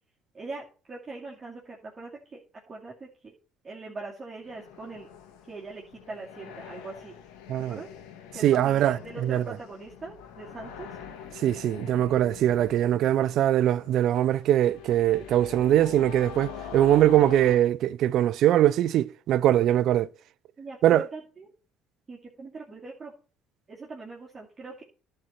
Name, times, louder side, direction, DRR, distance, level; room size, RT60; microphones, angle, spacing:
voice 1, 0.3-2.4 2.7-3.3 3.6-5.1 5.5-7.2 7.7-7.9 8.3-10.9 20.6-21.5 22.1-23.1 23.7-24.8, right 3 dB, 25° right, 2.4 m, -41 dB
sound 1, 4.4-17.6, left 8 dB, 85° left, 1.7 m, -44 dB
voice 2, 7.5-7.8 8.4-9.6 11.4-20.1 20.8-21.1, right 12 dB, 65° right, 0.4 m, -22 dB
11.0 x 4.4 x 6.6 m
supercardioid pair, 95°, 0 cm